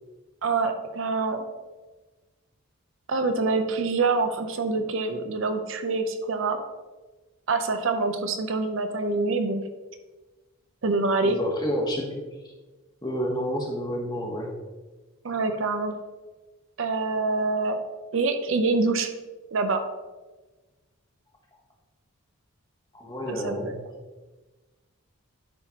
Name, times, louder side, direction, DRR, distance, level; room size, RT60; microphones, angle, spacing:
voice 1, 0.4-1.5 3.1-6.7 7.5-9.6 10.8-11.4 15.2-15.9 16.8-17.8 18.1-19.1 19.5-19.8 23.3-23.7, right 3 dB, 60° right, 7 dB, 0.6 m, -25 dB
voice 2, 11.2-12.2 13.0-14.5 22.9-23.7, equal, 20° left, -1 dB, 1.1 m, -29 dB
10.5 x 4.4 x 2.9 m, 1.2 s
head